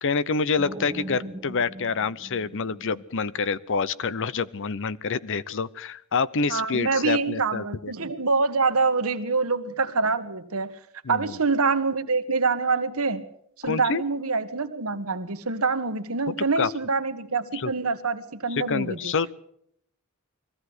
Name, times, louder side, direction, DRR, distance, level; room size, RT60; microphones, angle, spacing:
voice 1, 0.0-7.9 11.0-11.4 13.7-14.0 16.6-16.7 17.5-17.7 18.5-19.3, left 5 dB, 60° left, 18 dB, 0.7 m, -27 dB
sound 1, 0.6-3.4, right 1 dB, 20° right, 1.3 m, -40 dB
voice 2, 6.5-10.8 11.1-13.2 13.6-19.1, right 4 dB, 75° right, 10 dB, 1.5 m, -25 dB
21.5 x 15.5 x 7.9 m, 0.71 s
head